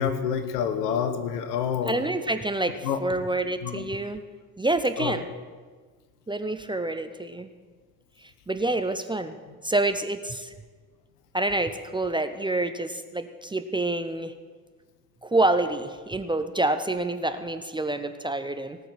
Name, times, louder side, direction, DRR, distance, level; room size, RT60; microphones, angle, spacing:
voice 1, 0.0-2.0 2.8-3.0 3.6-3.9 5.0-5.2, left 8 dB, 70° left, 9 dB, 1.2 m, -28 dB
voice 2, 1.9-4.2 4.6-5.3 6.3-7.5 8.5-9.3 9.6-10.5 11.3-14.3 15.2-18.8, right 2 dB, 10° right, 8 dB, 0.6 m, -27 dB
18.5 x 6.6 x 7.5 m, 1.5 s
figure-of-eight pair, 50°, 49 cm